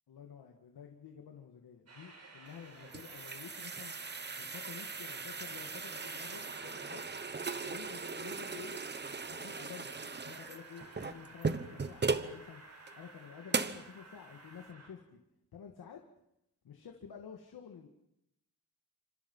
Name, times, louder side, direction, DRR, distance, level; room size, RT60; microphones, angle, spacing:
voice 1, 0.1-4.0 4.3-7.1 7.7-12.6 13.0-15.2 15.5-16.0 16.6-17.9, left 7 dB, 75° left, 3 dB, 2.2 m, -51 dB
Train, 1.9-14.9, right 2 dB, 45° right, 6.8 m, -55 dB
sound 1, 2.5-12.3 12.9-13.0 13.5-13.9, right 4 dB, 30° right, 1.0 m, -38 dB
29.5 x 26.0 x 5.7 m, 0.84 s
wide cardioid pair, 150°, 37 cm